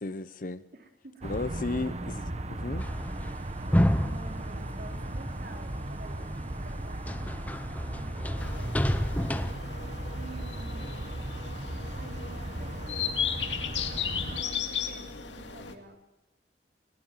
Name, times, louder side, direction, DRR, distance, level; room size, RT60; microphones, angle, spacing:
voice 1, 0.0-0.6 1.2-2.2 2.5-2.9, left 2 dB, 50° left, 0.9 m, -34 dB
voice 2, 0.7-1.6 3.8-7.3 7.7-9.4 10.1-11.3 11.9-16.0, right 2 dB, 55° right, 3.7 m, -50 dB
sound 1, 1.2-14.4, right 1 dB, 40° right, 1.4 m, -37 dB
sound 2, 2.8-5.8 6.2-9.5, equal, 10° left, 0.9 m, -30 dB
sound 3, 8.4-15.7, left 7 dB, 90° left, 2.3 m, -35 dB
22.0 x 18.5 x 7.6 m
head